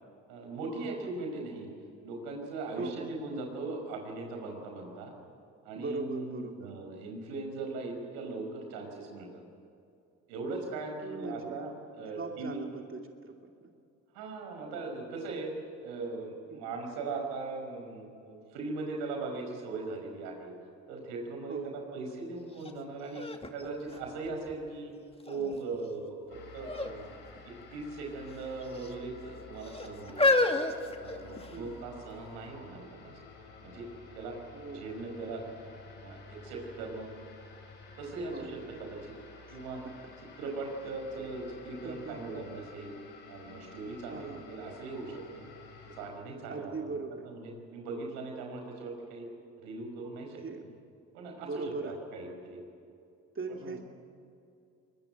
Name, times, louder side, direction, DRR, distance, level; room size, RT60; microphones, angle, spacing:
voice 1, 0.3-1.7 2.0-5.1 5.7-9.4 10.3-12.6 14.1-15.5 15.8-20.5 20.9-24.9 25.3-26.2 26.5-27.1 27.5-30.6 31.0-33.1 33.6-33.9 34.1-34.4 34.7-35.4 36.0-37.1 38.0-39.1 39.5-39.8 40.4-42.9 43.3-45.5 45.9-49.3 49.6-50.4 51.1-52.6 53.5-53.8, right 3 dB, 80° right, 2 dB, 5.4 m, -39 dB
voice 2, 2.8-3.1 5.7-6.7 11.0-11.6 12.1-13.3 13.6-13.7 16.5-16.6 21.5-21.7 31.5-31.8 34.5-34.9 38.2-38.8 39.5-39.6 40.8-40.9 41.8-42.4 44.1-44.4 46.5-47.3 50.4-50.6 51.4-52.0 53.3-53.8, right 3 dB, 35° right, 2 dB, 2.7 m, -40 dB
sound 1, 22.6-22.7 23.1-24.7 25.3-25.8 26.6-27.0 27.2-27.4 28.3-28.9 29.6-31.7 32.4-32.5, left 2 dB, 15° left, 2.4 m, -30 dB
sound 2, 26.3-46.1, left 4 dB, 80° left, 7.0 m, -52 dB
23.5 x 21.5 x 9.2 m, 2.6 s
hypercardioid pair, 55°, 37 cm